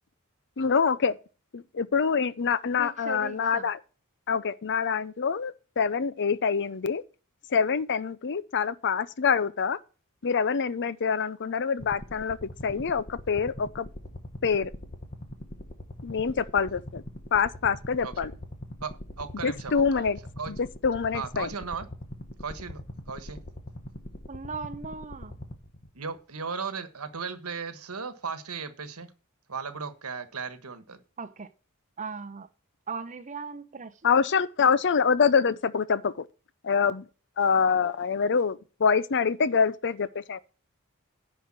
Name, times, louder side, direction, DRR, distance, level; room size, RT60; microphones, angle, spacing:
voice 1, 0.6-1.2 1.5-3.8 4.3-7.0 7.5-9.8 10.2-12.4 12.6-13.9 14.4-14.7 16.0-17.0 17.3-18.3 19.4-20.2 20.5-21.5 34.0-36.3 36.6-37.1 37.4-40.4, left 6 dB, 55° left, 0.6 m, -25 dB
voice 2, 2.7-3.7 24.3-25.4 31.2-31.5 32.0-32.5 32.9-34.0, right 4 dB, 35° right, 0.8 m, -38 dB
sound 1, 11.8-26.2, left 1 dB, 40° left, 1.3 m, -42 dB
voice 3, 19.2-20.5 21.1-21.9 22.4-22.8 23.1-23.4 25.9-29.1 29.5-31.0, right 5 dB, 80° right, 1.4 m, -36 dB
10.5 x 4.9 x 7.6 m
head